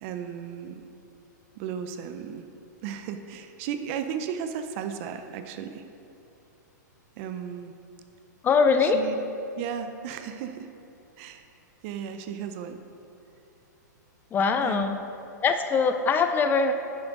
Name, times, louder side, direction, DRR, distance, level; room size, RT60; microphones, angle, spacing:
voice 1, 0.0-0.9 1.6-2.5 2.8-5.9 7.2-7.7 8.8-9.2 9.5-10.7 11.2-11.5 11.8-12.8 14.6-14.9, right 8 dB, 45° right, 8 dB, 0.6 m, -35 dB
voice 2, 8.4-9.0 14.3-15.0 15.4-16.7, left 5 dB, 20° left, 7 dB, 0.4 m, -22 dB
9.8 x 7.2 x 3.8 m, 2.7 s
hypercardioid pair, 125°, 10 cm